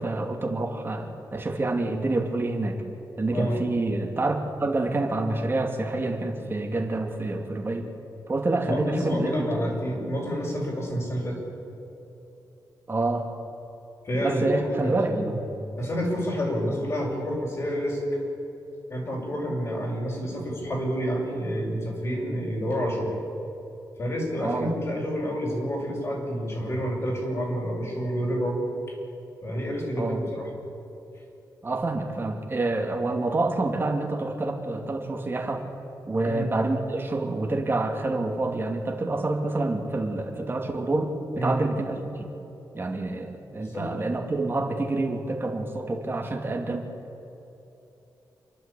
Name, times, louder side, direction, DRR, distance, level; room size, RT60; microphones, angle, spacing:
voice 1, 0.0-2.8 3.2-7.9 8.3-9.5 12.9-13.3 14.2-15.1 24.4-24.7 30.0-30.2 31.6-35.6 36.0-42.3 42.7-46.8, right 2 dB, 30° right, 2 dB, 2.6 m, -27 dB
voice 2, 3.3-3.6 8.7-11.4 14.0-15.3 15.8-18.0 18.9-23.1 24.0-28.6 29.4-30.5 36.2-36.5 41.4-41.6 43.6-43.9, equal, 40° left, -2 dB, 6.5 m, -29 dB
27.5 x 12.0 x 8.6 m, 3.0 s
wide cardioid pair, 115°, 8 cm